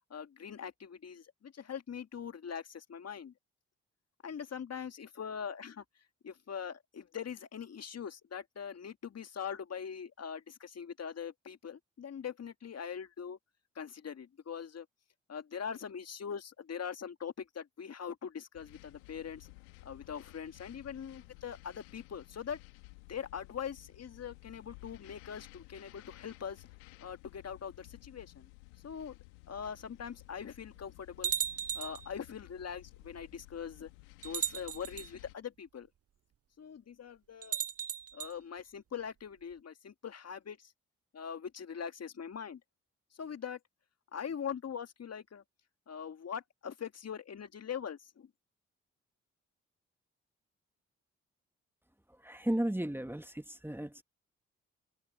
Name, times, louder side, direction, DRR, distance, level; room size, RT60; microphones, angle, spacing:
voice 1, 0.1-3.3 4.2-5.8 6.2-13.4 13.8-14.9 15.3-19.5 19.8-22.6 23.1-26.7 27.0-28.5 28.8-29.2 29.5-31.3 31.8-33.9 34.2-35.9 36.6-37.6 38.1-40.7 41.1-42.6 43.1-43.6 44.1-45.4 45.9-48.3, left 7 dB, 50° left, 1.8 m, -42 dB
sound 1, 18.5-35.3, left 26 dB, 85° left, 2.1 m, -55 dB
sound 2, 29.6-29.7 30.4-30.5 31.2-32.1 33.2-33.3 34.2-35.1 37.4-38.3, right 8 dB, 45° right, 0.8 m, -36 dB
voice 2, 52.2-54.0, right 1 dB, 5° right, 1.6 m, -34 dB
hypercardioid pair, 40°, 33 cm